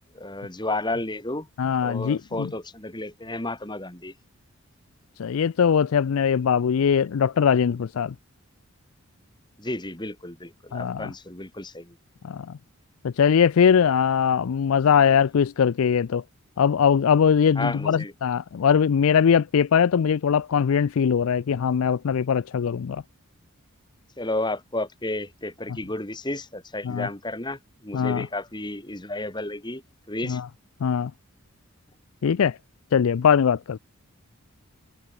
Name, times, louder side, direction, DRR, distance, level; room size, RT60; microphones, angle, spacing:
voice 1, 0.1-1.5 1.8-4.1 9.6-12.0 17.6-18.1 24.2-29.8 30.1-30.4, left 2 dB, 20° left, 2.6 m, -32 dB
voice 2, 1.6-2.5 5.2-8.1 10.7-11.1 12.2-12.6 13.0-16.2 16.6-23.0 26.8-27.1 27.9-28.3 30.2-30.5 30.8-31.1 32.2-32.6 32.9-33.8, left 7 dB, 70° left, 0.4 m, -21 dB
head